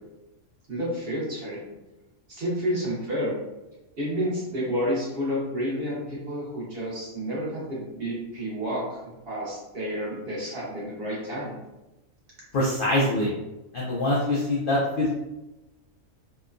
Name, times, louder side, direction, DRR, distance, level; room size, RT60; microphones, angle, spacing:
voice 1, 0.7-1.6 2.3-3.3 4.0-9.0 9.2-11.5, equal, 50° right, -6 dB, 1.0 m, -30 dB
voice 2, 12.5-13.3 13.7-15.1, left 1 dB, 65° left, -5 dB, 0.5 m, -24 dB
3.0 x 2.1 x 2.4 m, 0.99 s
omnidirectional pair, 1.4 m